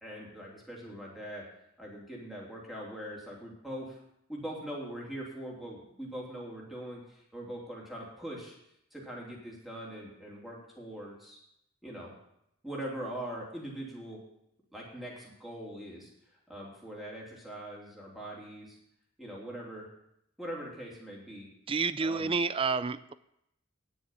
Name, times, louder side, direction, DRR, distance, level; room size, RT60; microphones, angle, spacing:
voice 1, 0.0-1.5 1.8-4.0 4.3-8.6 8.9-11.4 11.8-12.1 12.6-14.2 14.7-18.8 19.2-19.9 20.4-21.5 22.0-22.3, right 1 dB, ahead, -4 dB, 3.1 m, -42 dB
voice 2, 21.7-23.1, right 4 dB, 25° right, 14 dB, 0.4 m, -29 dB
9.9 x 7.0 x 9.1 m, 0.77 s
head